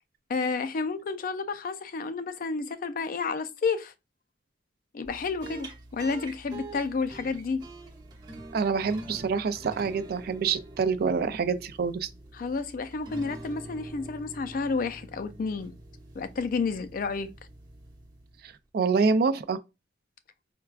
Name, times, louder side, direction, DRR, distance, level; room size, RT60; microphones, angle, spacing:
voice 1, 0.3-3.9 4.9-7.6 12.3-15.7 16.2-17.3, left 4 dB, 50° left, 0.3 m, -30 dB
sound 1, 5.0-18.6, right 2 dB, 25° right, 0.9 m, -45 dB
voice 2, 8.5-12.1 18.4-19.6, right 5 dB, 55° right, 0.4 m, -26 dB
4.5 x 2.3 x 2.3 m
head